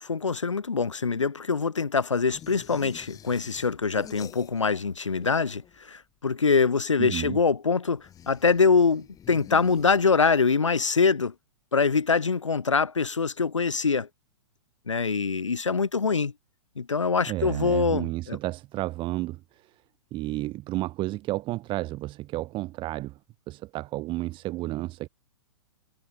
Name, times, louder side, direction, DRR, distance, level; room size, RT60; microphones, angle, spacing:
voice 1, 0.0-11.3 11.7-14.1 14.9-16.3 16.8-18.4, left 5 dB, 90° left, 0.7 m, -24 dB
sound 1, 2.3-4.9 5.1-6.0 8.0-10.5, left 10 dB, 20° left, 2.0 m, -48 dB
voice 2, 7.0-7.4 17.3-19.8 20.1-23.2 23.5-25.1, right 17 dB, 35° right, 2.1 m, -32 dB
figure-of-eight pair, 110°, 15 cm